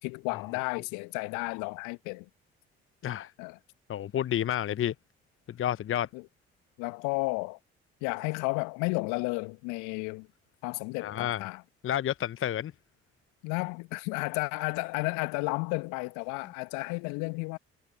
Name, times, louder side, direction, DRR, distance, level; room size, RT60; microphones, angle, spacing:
voice 1, 0.0-2.3 3.4-3.6 6.1-6.2 6.8-7.6 8.0-10.3 10.6-11.6 13.4-17.6, left 29 dB, 65° left, 1.6 m, -32 dB
voice 2, 3.9-4.9 5.5-6.1 11.0-11.4 11.8-12.7, left 11 dB, 40° left, 0.9 m, -30 dB
figure-of-eight pair, 45°, 32 cm